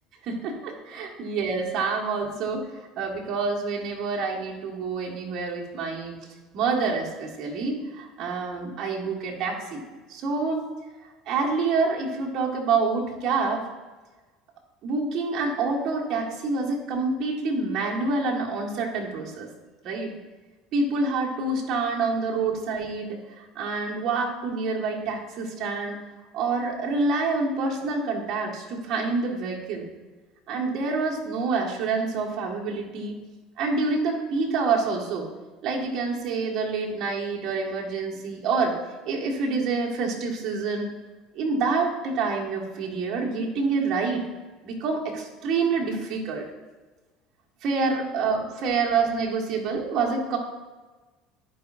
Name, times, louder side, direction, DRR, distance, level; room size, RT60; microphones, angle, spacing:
voice 1, 0.2-2.7 3.0-6.1 6.5-9.8 10.1-10.6 11.3-13.6 14.8-19.5 19.8-20.1 20.7-26.0 26.3-29.9 30.5-33.1 33.6-35.3 35.6-38.7 39.0-40.9 41.3-44.2 44.6-46.4 47.6-50.4, right 4 dB, 55° right, -1 dB, 1.7 m, -27 dB
11.0 x 5.2 x 2.6 m, 1.3 s
supercardioid pair, 90°, 0 cm